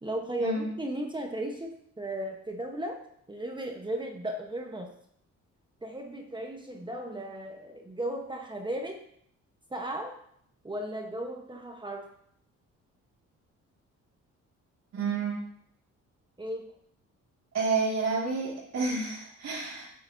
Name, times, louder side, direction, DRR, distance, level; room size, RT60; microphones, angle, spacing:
voice 1, 0.0-3.0 3.3-4.9 5.8-9.0 9.7-10.1 10.6-12.1 16.4-16.7, right 1 dB, 15° right, 2 dB, 1.1 m, -35 dB
voice 2, 14.9-15.4 17.5-19.9, right 4 dB, 60° right, -7 dB, 2.3 m, -29 dB
9.0 x 7.7 x 2.7 m, 0.68 s
cardioid pair, 90°, 30 cm